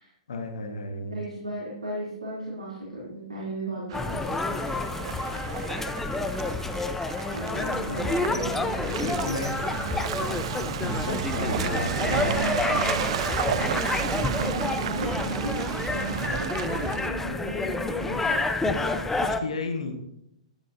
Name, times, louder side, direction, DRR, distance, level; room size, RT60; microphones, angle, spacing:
voice 1, 0.3-1.2 8.3-8.4 9.0-9.6 10.8-12.6 19.2-19.9, left 3 dB, 70° left, 5 dB, 1.5 m, -33 dB
voice 2, 1.1-4.6 7.3-9.4 14.2-18.3 18.6-19.1, right 1 dB, 85° right, -5 dB, 3.3 m, -36 dB
sound 1, 3.9-19.4, left 3 dB, 10° left, 0.6 m, -29 dB
Car passing by / Engine, 3.9-17.1, right 11 dB, 55° right, 0.3 m, -32 dB
12.5 x 10.5 x 2.8 m, 0.81 s
figure-of-eight pair, 115°, 4 cm